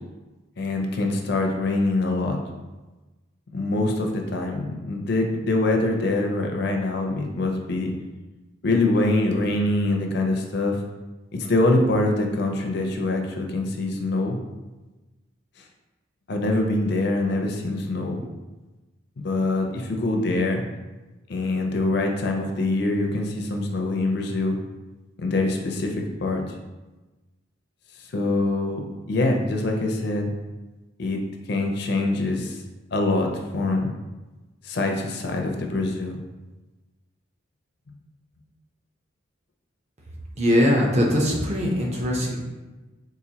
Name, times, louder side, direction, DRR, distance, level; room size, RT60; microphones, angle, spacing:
voice 1, 0.6-2.4 3.5-7.9 8.6-10.8 11.3-14.4 16.3-18.2 19.2-20.6 21.3-24.6 25.2-26.4 28.1-30.3 31.0-31.2 31.5-32.6 32.9-33.9 34.6-36.2, left 2 dB, 55° left, 2 dB, 0.4 m, -24 dB
voice 2, 40.4-42.4, equal, 35° right, -2 dB, 0.6 m, -21 dB
4.0 x 2.5 x 2.8 m, 1.2 s
head